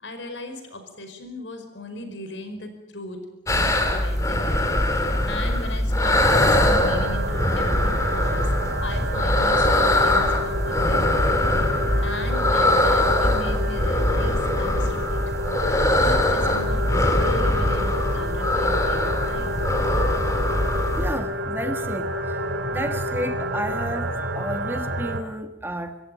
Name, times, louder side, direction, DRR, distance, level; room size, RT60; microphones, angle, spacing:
voice 1, 0.0-3.2 3.5-4.6 5.3-8.5 8.8-11.3 11.7-15.2 16.0-19.5, left 1 dB, 80° left, 7 dB, 5.0 m, -37 dB
sound 1, 3.5-21.2, left 1 dB, 15° left, 2.7 m, -22 dB
sound 2, 6.7-25.2, right 2 dB, 90° right, 2.7 m, -30 dB
sound 3, 9.5-23.8, left 5 dB, 70° right, 3.9 m, -34 dB
voice 2, 21.0-22.4 22.7-26.0, right 1 dB, 10° right, 8 dB, 1.4 m, -31 dB
26.0 x 15.0 x 9.1 m, 0.91 s
head